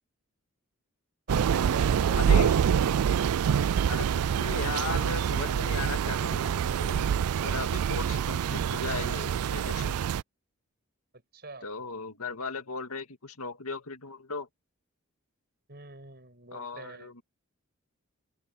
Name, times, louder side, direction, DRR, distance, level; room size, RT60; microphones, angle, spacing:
voice 1, 1.3-2.2 11.3-11.7 15.7-17.1, right 3 dB, 45° right, 6.0 m, -42 dB
Thunder / Rain, 1.3-10.2, right 8 dB, 85° right, 0.4 m, -26 dB
voice 2, 2.1-2.6 3.9-7.1 7.4-10.0 11.6-14.5 16.5-17.2, left 4 dB, 85° left, 2.0 m, -37 dB
open air
head